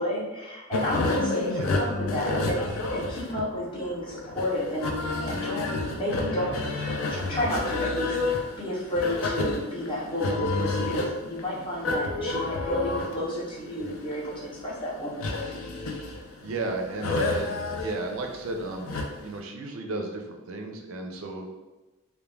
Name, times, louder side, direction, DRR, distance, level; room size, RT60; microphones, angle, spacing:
voice 1, 0.0-5.6 5.9-6.5 7.1-15.6, left 1 dB, 25° left, -6 dB, 0.7 m, -31 dB
sound 1, 0.7-19.4, left 2 dB, 70° left, 0.4 m, -30 dB
voice 2, 16.4-21.4, right 2 dB, 65° right, 2 dB, 0.4 m, -34 dB
2.3 x 2.1 x 3.1 m, 1.1 s
head